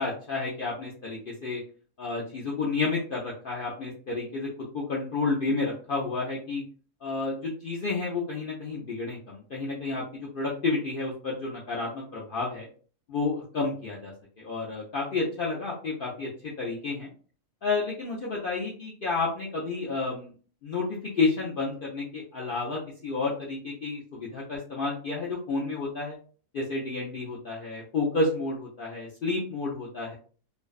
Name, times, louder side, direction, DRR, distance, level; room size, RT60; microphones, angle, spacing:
voice 1, 0.0-1.6 2.0-4.5 4.7-6.6 7.0-12.7 13.1-16.3 16.6-17.1 17.6-20.3 20.6-26.1 26.5-30.1, left 3 dB, 65° left, -4 dB, 0.5 m, -30 dB
2.5 x 2.1 x 2.3 m, 0.41 s
omnidirectional pair, 1.5 m